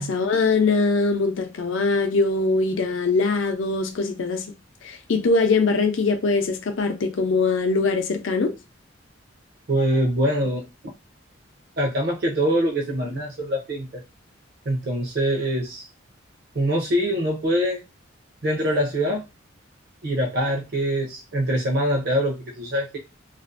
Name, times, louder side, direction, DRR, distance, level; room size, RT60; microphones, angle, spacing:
voice 1, 0.0-4.4 4.8-8.5, left 3 dB, 75° left, 0.5 m, -22 dB
voice 2, 9.7-10.7 11.8-14.0 14.7-15.9 16.5-17.8 18.4-19.2 20.0-23.0, equal, 55° right, 0.6 m, -24 dB
2.5 x 2.0 x 2.5 m
head